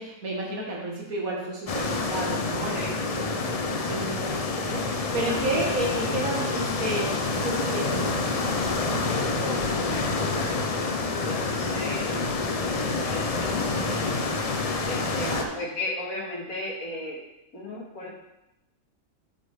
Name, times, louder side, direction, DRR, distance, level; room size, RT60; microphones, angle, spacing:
voice 1, 0.0-8.2 15.0-15.5, right 1 dB, 75° right, -3 dB, 2.3 m, -32 dB
sound 1, 1.7-15.4, left 3 dB, 60° left, 0.4 m, -27 dB
voice 2, 9.1-12.2 12.6-14.2 14.8-17.2 17.5-18.1, left 2 dB, 80° left, -4 dB, 2.4 m, -36 dB
7.7 x 6.6 x 3.6 m, 0.88 s
omnidirectional pair, 1.5 m